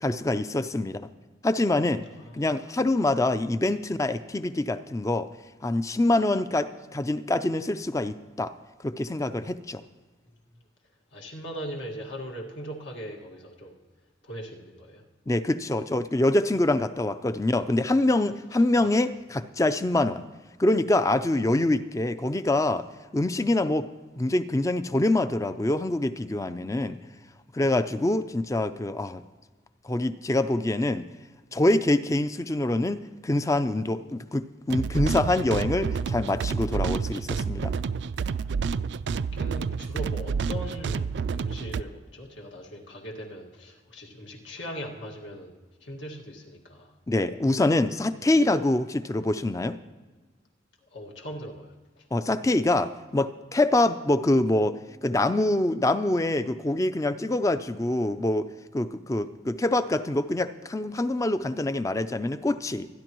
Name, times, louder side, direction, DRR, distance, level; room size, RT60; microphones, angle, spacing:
voice 1, 0.0-1.1 1.4-2.1 2.3-5.3 5.6-8.5 8.8-9.8 15.3-20.3 20.6-22.8 23.1-23.9 24.2-27.0 27.5-29.2 29.8-31.1 31.5-37.7 47.1-49.8 52.1-54.8 55.0-58.5 58.7-62.9, left 2 dB, 15° left, 12 dB, 0.4 m, -25 dB
voice 2, 2.2-2.5 11.1-13.8 14.2-15.0 18.8-19.0 26.9-27.1 39.3-45.6 45.8-46.9 50.9-51.7 52.0-52.1, equal, 75° left, 0 dB, 1.9 m, -39 dB
sound 1, 34.7-41.8, right 5 dB, 65° right, 0.3 m, -29 dB
24.5 x 10.5 x 3.0 m, 1.3 s
head